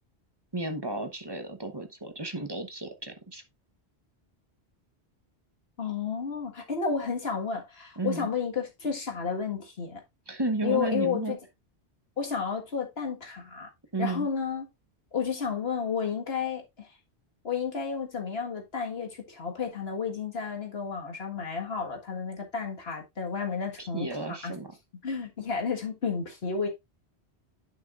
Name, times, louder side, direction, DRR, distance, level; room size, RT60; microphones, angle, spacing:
voice 1, 0.5-3.4 8.0-8.3 10.3-11.3 13.9-14.3 23.8-24.7, right 2 dB, 25° right, 1.0 m, -33 dB
voice 2, 5.8-10.0 10.6-11.4 12.2-13.7 14.0-14.7 15.1-16.9 17.4-24.5 25.0-26.7, left 6 dB, 65° left, 1.9 m, -32 dB
10.5 x 5.9 x 2.5 m
omnidirectional pair, 1.1 m